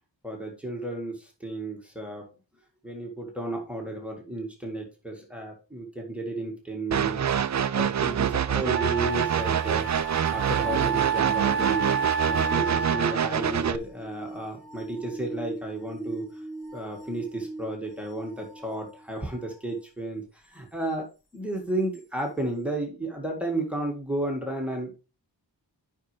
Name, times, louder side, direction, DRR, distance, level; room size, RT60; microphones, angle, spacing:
voice 1, 0.2-2.3 2.8-7.4 7.7-11.9 12.3-16.3 16.7-21.1 21.3-24.9, right 2 dB, 5° right, 0 dB, 1.9 m, -33 dB
sound 1, 6.9-13.8, right 8 dB, 45° right, 0.4 m, -26 dB
Wind instrument woodwind instrument, 8.1-8.2 8.7-13.4, right 7 dB, 30° right, 1.2 m, -29 dB
sound 2, 13.0-19.6 21.9-22.0, right 1 dB, 45° left, 4.3 m, -42 dB
9.0 x 5.5 x 3.3 m, 0.32 s
wide cardioid pair, 90°, 43 cm